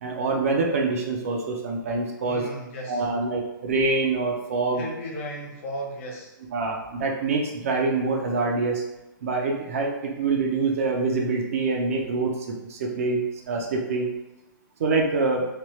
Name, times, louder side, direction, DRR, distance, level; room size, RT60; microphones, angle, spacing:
voice 1, 0.0-2.4 2.9-4.9 6.5-8.8 9.2-14.1 14.8-15.5, right 3 dB, 40° right, 1 dB, 0.5 m, -25 dB
voice 2, 2.2-3.1 4.7-6.4, equal, 35° left, -1 dB, 0.7 m, -35 dB
3.1 x 2.1 x 3.0 m, 0.99 s
hypercardioid pair, 165°, 11 cm